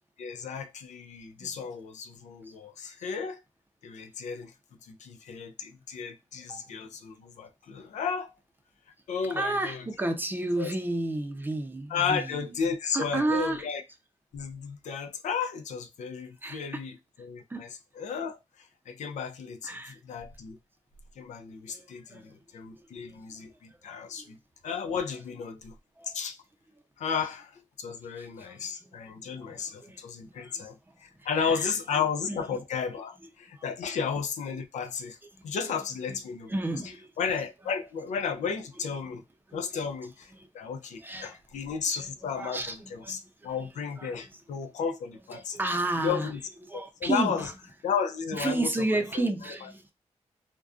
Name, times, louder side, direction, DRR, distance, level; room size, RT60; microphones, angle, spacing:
voice 1, 0.2-3.4 3.8-4.5 4.8-8.3 9.1-9.8 10.6-10.7 11.9-13.8 14.3-16.9 17.2-17.7 18.0-20.6 21.2-24.4 24.6-25.7 26.0-26.4 27.0-35.2 35.4-36.5 37.2-39.2 39.5-45.6 46.0-46.4 46.7-47.5 47.8-48.7 49.1-49.3, left 6 dB, 85° left, 0.4 m, -33 dB
voice 2, 6.4-6.7 9.3-12.5 12.9-13.7 16.4-16.8 17.5-17.7 19.6-20.0 21.7-22.3 22.7-23.2 23.7-23.8 24.2-24.3 26.0-26.2 28.2-30.0 30.3-31.7 32.3-32.4 33.6-33.7 35.3-35.7 36.1-36.2 36.5-37.1 38.9-39.0 39.5-39.7 40.3-40.7 41.0-41.4 42.0-43.2 44.0-44.2 45.3-46.3 46.6-47.6 48.3-49.9, right 2 dB, 15° right, 0.5 m, -33 dB
2.4 x 2.2 x 2.4 m
cardioid pair, 85°, 12 cm